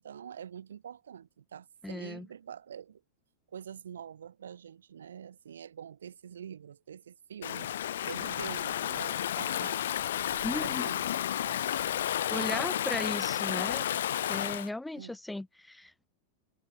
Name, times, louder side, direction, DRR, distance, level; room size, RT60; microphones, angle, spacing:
voice 1, 0.0-3.0 3.5-7.7 8.1-9.9 10.3-12.7 15.0-15.2, right 8 dB, 65° right, 5.0 m, -46 dB
voice 2, 1.8-2.3 10.4-10.9 12.3-13.9 14.2-16.1, left 2 dB, 5° left, 0.6 m, -37 dB
Stream / Ocean, 7.4-14.7, left 11 dB, 60° left, 0.4 m, -32 dB
figure-of-eight pair, 90°, 0 cm